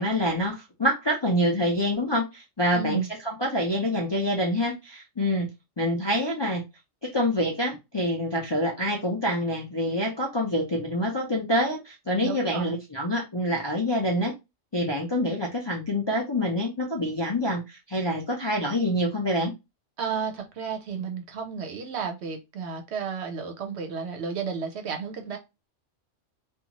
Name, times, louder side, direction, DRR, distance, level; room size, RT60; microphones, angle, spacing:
voice 1, 0.0-5.5 5.8-6.6 7.0-14.3 14.7-19.5, equal, 35° left, 0.4 m, -26 dB
voice 2, 2.7-3.1 12.2-12.8 20.0-25.4, right 6 dB, 65° right, 0.9 m, -32 dB
2.6 x 2.4 x 2.8 m
omnidirectional pair, 1.3 m